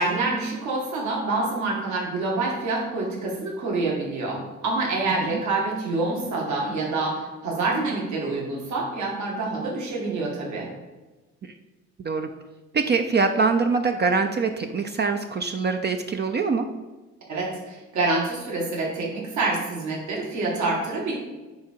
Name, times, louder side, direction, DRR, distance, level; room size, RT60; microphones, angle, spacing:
voice 1, 0.0-10.7 17.3-21.2, right 3 dB, 70° right, -2 dB, 2.2 m, -27 dB
voice 2, 12.0-12.3 12.7-16.7, right 4 dB, 35° right, 6 dB, 0.5 m, -24 dB
9.4 x 3.8 x 4.5 m, 1.1 s
cardioid pair, 90°, 30 cm